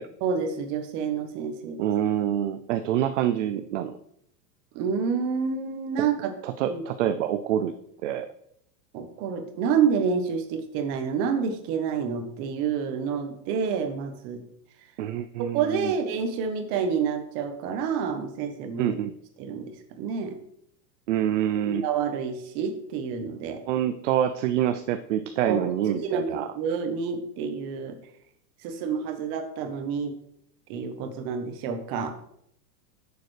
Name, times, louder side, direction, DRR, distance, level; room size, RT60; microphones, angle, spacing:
voice 1, 0.2-1.9 4.7-6.3 6.6-6.8 8.9-14.4 15.4-18.9 19.4-19.7 20.0-20.4 21.6-23.6 25.4-28.0 28.6-30.2 30.7-32.1, right 6 dB, 30° right, 7 dB, 1.0 m, -28 dB
voice 2, 1.8-4.0 6.0-6.1 6.4-7.7 8.0-8.3 15.0-15.9 18.8-19.1 21.1-21.9 23.7-26.5, right 11 dB, 50° right, 9 dB, 0.5 m, -26 dB
11.0 x 6.8 x 3.2 m, 0.74 s
supercardioid pair, 165°, 50 cm